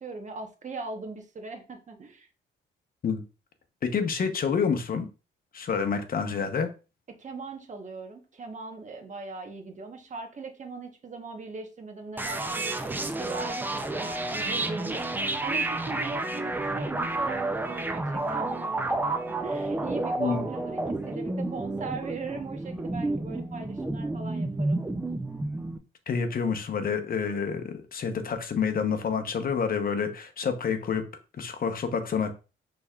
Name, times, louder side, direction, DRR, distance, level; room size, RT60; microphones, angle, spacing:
voice 1, 0.0-2.3 7.1-24.9, right 3 dB, 40° right, 1.1 m, -40 dB
voice 2, 3.8-5.1 5.5-6.7 20.2-20.4 26.1-31.0 31.4-32.3, left 6 dB, 45° left, 0.9 m, -28 dB
sound 1, 12.2-25.8, right 2 dB, 10° right, 0.5 m, -30 dB
6.1 x 3.4 x 2.4 m
cardioid pair, 90°, 20 cm